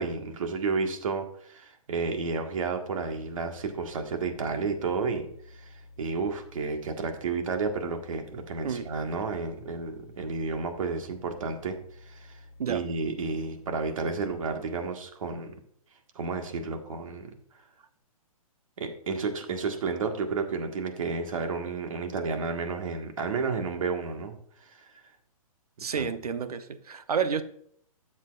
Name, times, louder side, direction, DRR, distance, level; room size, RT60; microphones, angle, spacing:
voice 1, 0.0-12.4 12.7-15.5 16.1-17.3 18.8-24.3 24.6-25.0 25.9-26.1, right 4 dB, 65° right, 1.6 m, -31 dB
sound 1, 3.0-14.6, left 2 dB, 30° left, 0.8 m, -51 dB
voice 2, 25.8-27.4, right 6 dB, 90° right, 0.9 m, -30 dB
12.5 x 7.4 x 2.4 m
hypercardioid pair, 160°, 19 cm